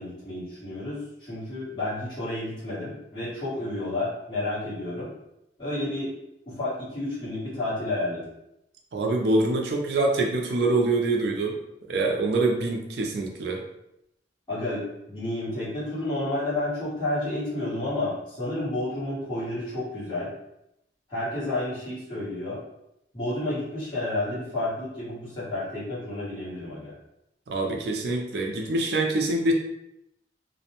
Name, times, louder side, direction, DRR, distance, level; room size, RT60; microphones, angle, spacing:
voice 1, 0.0-5.1 5.6-6.1 6.4-8.3 14.5-20.3 21.1-22.6 23.1-26.9, left 1 dB, 25° left, -12 dB, 1.3 m, -31 dB
voice 2, 8.9-11.6 11.9-13.6 27.5-29.5, right 2 dB, 65° right, 1 dB, 0.4 m, -25 dB
2.5 x 2.1 x 2.8 m, 0.83 s
head